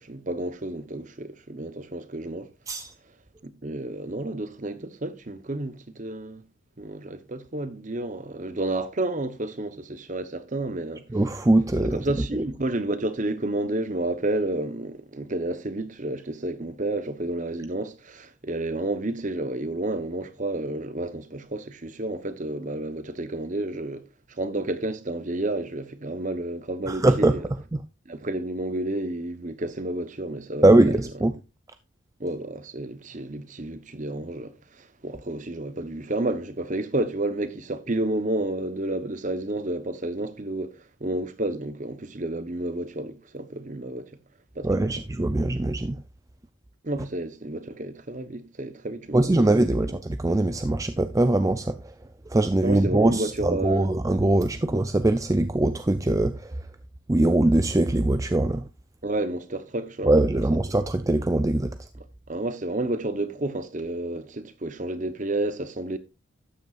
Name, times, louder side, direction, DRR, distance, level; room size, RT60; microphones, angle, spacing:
voice 1, 0.0-2.5 3.4-6.4 6.8-11.0 11.8-24.1 24.4-27.5 28.1-31.0 32.2-44.1 44.5-45.0 46.8-49.5 49.8-50.0 52.6-53.9 59.0-60.2 62.3-66.0, right 2 dB, 40° right, 0.9 m, -31 dB
voice 2, 11.1-12.0 26.9-27.4 27.7-27.8 30.6-31.3 44.6-46.0 49.1-51.8 52.3-56.5 57.1-58.6 60.0-61.7, right 2 dB, 15° right, 0.4 m, -22 dB
12.5 x 9.3 x 2.5 m
head